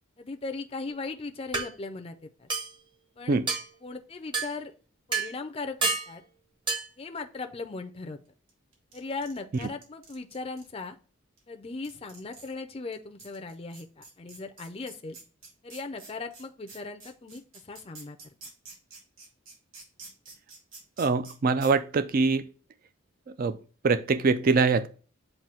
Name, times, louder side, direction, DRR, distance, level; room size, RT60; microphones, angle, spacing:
voice 1, 0.2-2.5 3.2-3.4 3.8-4.7 5.1-6.2 7.0-8.2 8.9-11.0 11.5-15.2 15.6-18.3, left 3 dB, 25° left, 0.5 m, -38 dB
sound 1, 0.9-1.0 1.5-1.7 2.5-2.8 3.5-3.7 4.3-4.5 5.1-5.3 5.8-6.1 6.7-6.9, right 4 dB, 25° right, 0.8 m, -28 dB
sound 2, 8.7-10.7 11.4-11.5 11.8-12.5 12.9-13.0 13.2-21.3 21.6-21.7, right 3 dB, 70° right, 3.0 m, -47 dB
voice 2, 21.0-22.4 23.4-23.6 23.8-24.9, right 4 dB, 45° right, 0.3 m, -23 dB
7.5 x 2.7 x 5.6 m
head